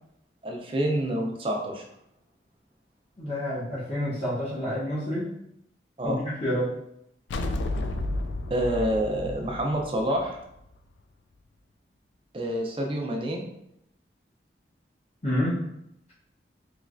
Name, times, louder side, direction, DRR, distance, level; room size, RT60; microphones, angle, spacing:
voice 1, 0.4-1.8 6.0-6.2 8.5-10.4 12.3-13.4, right 1 dB, 30° right, 1 dB, 0.4 m, -27 dB
voice 2, 3.2-5.3 6.0-6.7 15.2-15.6, equal, 35° left, -9 dB, 0.9 m, -28 dB
sound 1, 7.3-10.7, left 2 dB, 90° left, 0.3 m, -32 dB
3.1 x 3.1 x 2.5 m, 0.79 s
head